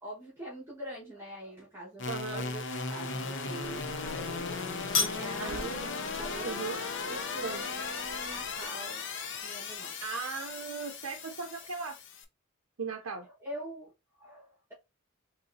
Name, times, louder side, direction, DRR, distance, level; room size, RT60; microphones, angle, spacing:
voice 1, 0.0-2.6 2.9-4.6 4.9-6.6 7.0-9.0 9.4-10.0 10.3-10.5 13.2-14.7, right 1 dB, 10° right, 1.3 m, -44 dB
sound 1, 2.0-12.2, left 4 dB, 55° left, 0.6 m, -37 dB
voice 2, 2.1-2.5 5.4-5.9 6.4-6.8 7.4-7.6 10.0-12.0 12.8-13.3, right 5 dB, 70° right, 0.5 m, -37 dB
sound 2, 3.6-8.7, left 4 dB, 35° left, 1.1 m, -38 dB
3.9 x 3.0 x 2.7 m
head